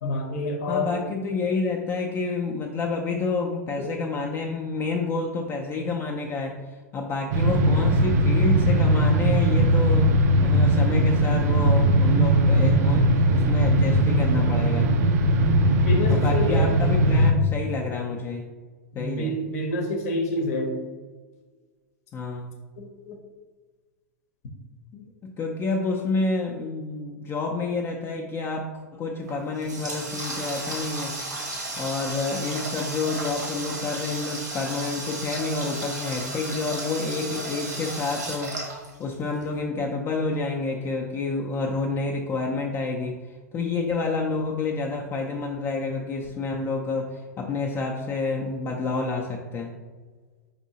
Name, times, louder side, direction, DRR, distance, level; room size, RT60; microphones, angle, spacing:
voice 1, 0.0-1.0 3.8-3.9 15.9-16.7 18.9-20.7 22.8-23.2, left 1 dB, 65° left, 3 dB, 0.7 m, -28 dB
voice 2, 0.7-14.9 16.1-18.5 18.9-19.4 22.1-22.5 24.9-31.2 31.8-38.7 39.0-49.7, left 3 dB, 30° left, 1 dB, 0.4 m, -29 dB
sound 1, 7.3-17.3, right 1 dB, 65° right, 0.4 m, -19 dB
Water tap faucet, 29.2-39.4, right 2 dB, 90° right, 1.2 m, -34 dB
4.8 x 2.6 x 2.8 m, 1.4 s
hypercardioid pair, 105°, 9 cm